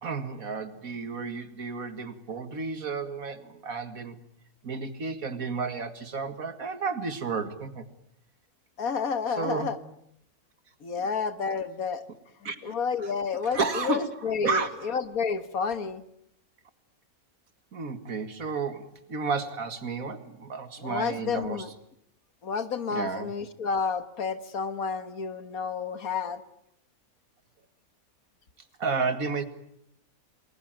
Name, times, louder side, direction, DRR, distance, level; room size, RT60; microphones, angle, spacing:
voice 1, 0.0-4.2 4.6-7.9 9.4-9.7 12.4-12.7 13.4-14.1 14.4-14.9 17.7-21.7 22.9-23.3 28.8-29.4, right 4 dB, 70° right, 10 dB, 2.4 m, -32 dB
voice 2, 8.8-9.8 10.8-12.0 12.6-16.0 20.8-21.7 22.4-26.4, left 5 dB, 80° left, 11 dB, 2.0 m, -30 dB
29.0 x 21.0 x 9.0 m, 0.74 s
omnidirectional pair, 1.5 m